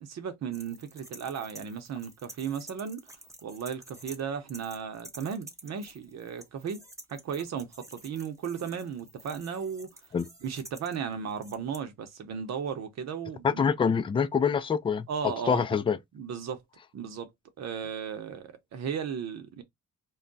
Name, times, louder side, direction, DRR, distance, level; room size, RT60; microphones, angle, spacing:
voice 1, 0.1-3.0 3.4-6.8 7.1-9.9 10.4-13.7 15.1-15.6 16.1-16.6 16.9-17.3 17.6-19.6, right 7 dB, 60° right, 0.8 m, -35 dB
sound 1, 0.5-4.2 4.5-11.8, right 2 dB, 10° right, 0.7 m, -49 dB
voice 2, 13.4-16.0, left 6 dB, 20° left, 0.3 m, -26 dB
2.3 x 2.2 x 3.8 m
cardioid pair, 90°, 30 cm